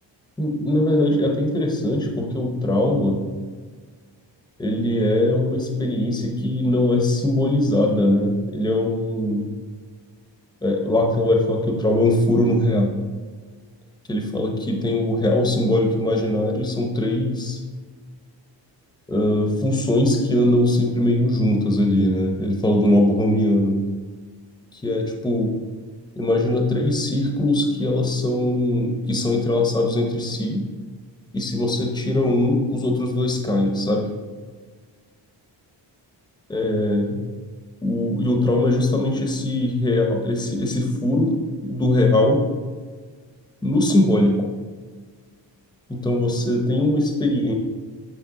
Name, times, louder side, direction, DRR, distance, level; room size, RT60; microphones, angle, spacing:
voice 1, 0.4-3.2 4.6-9.5 10.6-13.0 14.1-17.6 19.1-23.8 24.8-25.5 26.2-30.7 31.3-34.1 36.5-37.2 37.8-41.3 41.6-42.4 43.6-44.4 45.9-47.5, left 1 dB, 10° left, 2 dB, 0.7 m, -21 dB
9.4 x 3.3 x 4.8 m, 1.5 s
wide cardioid pair, 165°, 45 cm